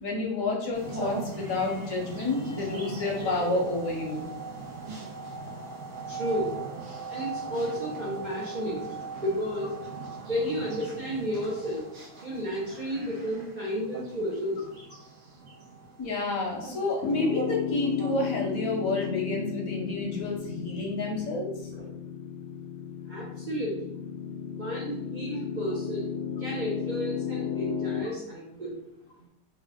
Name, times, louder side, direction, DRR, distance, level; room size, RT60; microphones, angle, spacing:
voice 1, 0.0-4.3 16.0-21.5, left 2 dB, 60° left, 0 dB, 0.9 m, -29 dB
sound 1, 0.7-18.5 19.0-19.1, right 4 dB, 80° right, 1.9 m, -40 dB
voice 2, 6.1-6.6 7.1-8.8 9.2-9.7 10.3-11.9 12.2-14.6 21.7-21.9 23.1-23.9 24.5-28.8, equal, 55° right, -6 dB, 0.5 m, -32 dB
Piano, 17.0-28.0, left 8 dB, 85° left, 0.7 m, -34 dB
4.4 x 2.4 x 3.5 m, 0.77 s
omnidirectional pair, 2.2 m